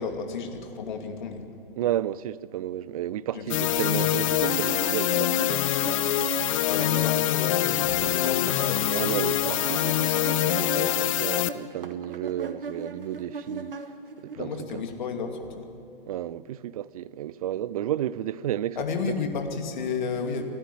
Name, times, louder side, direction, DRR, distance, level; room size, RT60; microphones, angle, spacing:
voice 1, 0.0-1.4 3.3-4.4 6.7-8.9 14.3-15.7 18.8-20.4, left 5 dB, 55° left, 2.6 m, -32 dB
voice 2, 1.8-5.6 8.0-8.2 8.9-13.7 14.2-14.8 16.1-18.8 19.1-19.2, right 12 dB, 40° right, 0.5 m, -32 dB
sound 1, 3.5-11.5, left 14 dB, 35° left, 0.7 m, -25 dB
sound 2, 4.3-7.4 7.7-14.4, right 5 dB, 70° right, 1.6 m, -37 dB
29.0 x 12.0 x 8.5 m
figure-of-eight pair, 120°, 29 cm